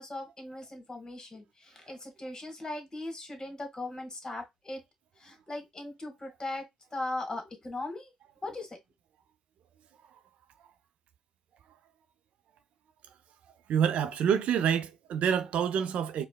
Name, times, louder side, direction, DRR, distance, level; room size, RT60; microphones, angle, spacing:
voice 1, 0.0-4.8 5.2-6.6 6.9-8.1 8.4-8.8, left 2 dB, 30° left, 1.4 m, -39 dB
voice 2, 13.7-16.3, right 8 dB, 65° right, 0.4 m, -27 dB
4.6 x 2.1 x 2.2 m
hypercardioid pair, 45°, 2 cm